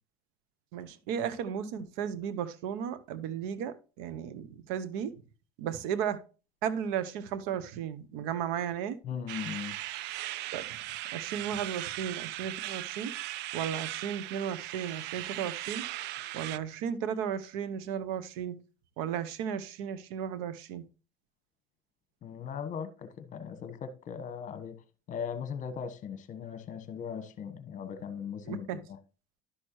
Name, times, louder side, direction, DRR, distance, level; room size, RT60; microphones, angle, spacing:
voice 1, 0.7-5.2 5.6-6.2 6.6-9.0 10.5-10.8 11.1-13.2 13.5-15.8 16.3-18.6 19.0-20.8 28.4-28.8, right 8 dB, 85° right, 0.8 m, -35 dB
voice 2, 9.0-9.8 22.2-24.8 25.1-28.8, left 7 dB, 40° left, 1.2 m, -38 dB
sound 1, 9.3-16.6, right 15 dB, 65° right, 0.4 m, -38 dB
11.5 x 6.3 x 3.1 m
cardioid pair, 115°, 19 cm